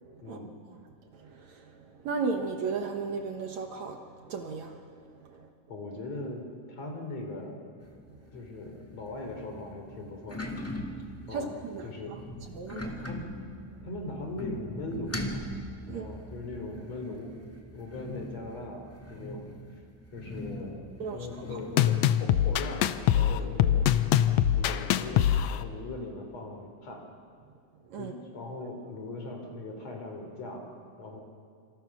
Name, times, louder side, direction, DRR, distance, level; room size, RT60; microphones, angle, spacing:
voice 1, 1.2-1.7 1.9-4.8 5.3-5.5 8.1-8.2 11.3-11.9 12.5-13.1 15.9-16.0 21.0-21.6 27.9-28.1, right 4 dB, 60° right, 4 dB, 2.3 m, -35 dB
voice 2, 5.7-7.7 8.3-10.4 11.3-11.5 11.8-12.2 13.1-13.3 13.8-15.3 15.8-17.3 17.7-19.4 20.1-20.9 21.1-23.9 24.5-27.1 28.0-30.7 31.0-31.2, left 2 dB, 50° left, 3 dB, 4.5 m, -39 dB
sound 1, 7.8-22.0, left 1 dB, 10° left, 0.7 m, -41 dB
sound 2, 21.8-25.6, left 11 dB, 80° left, 1.5 m, -24 dB
27.0 x 26.5 x 6.1 m, 2.3 s
omnidirectional pair, 3.9 m